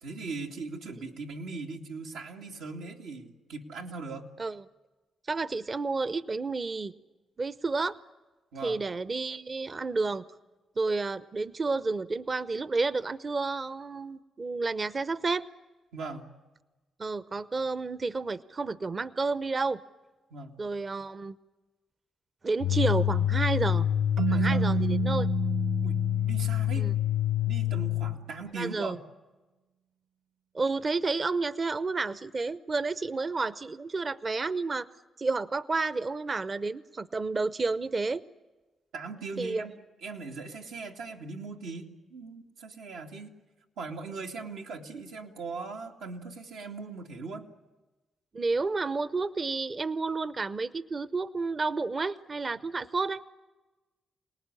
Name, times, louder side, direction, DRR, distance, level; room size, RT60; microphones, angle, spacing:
voice 1, 0.0-4.3 8.5-8.8 15.9-16.3 20.3-20.6 24.3-24.7 25.8-26.9 27.5-29.0 38.9-39.7 40.0-43.3 43.8-47.5, right 4 dB, 90° right, 0 dB, 2.3 m, -39 dB
voice 2, 5.3-6.9 7.4-8.0 8.6-10.2 10.8-15.5 17.0-19.8 20.6-21.4 22.4-23.9 24.3-25.3 26.8-26.9 28.6-29.0 30.5-34.9 35.2-38.2 39.4-39.7 48.3-53.2, right 3 dB, 40° right, 15 dB, 0.8 m, -30 dB
sound 1, 22.6-28.2, left 11 dB, 85° left, 0.9 m, -27 dB
Keyboard (musical), 24.2-26.9, right 11 dB, 70° right, 1.1 m, -31 dB
27.0 x 19.0 x 9.8 m, 1.2 s
cardioid pair, 65°, 0 cm